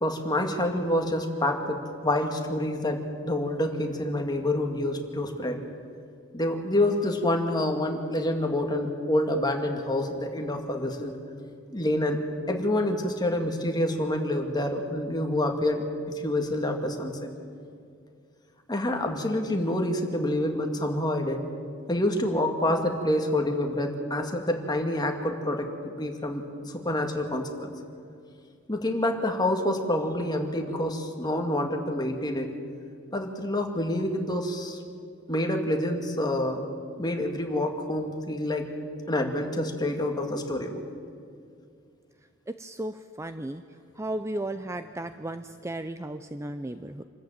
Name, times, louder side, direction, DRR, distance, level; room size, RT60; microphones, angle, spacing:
voice 1, 0.0-5.6 6.3-11.2 11.7-12.2 12.5-17.3 18.7-21.4 21.9-25.7 26.0-27.7 28.7-32.5 33.1-34.8 35.3-36.6 37.0-38.7 39.1-40.8, left 1 dB, 20° left, 3 dB, 2.1 m, -27 dB
voice 2, 42.5-43.6 44.0-47.0, right 1 dB, 15° right, 10 dB, 0.5 m, -35 dB
26.5 x 14.0 x 9.0 m, 2.3 s
head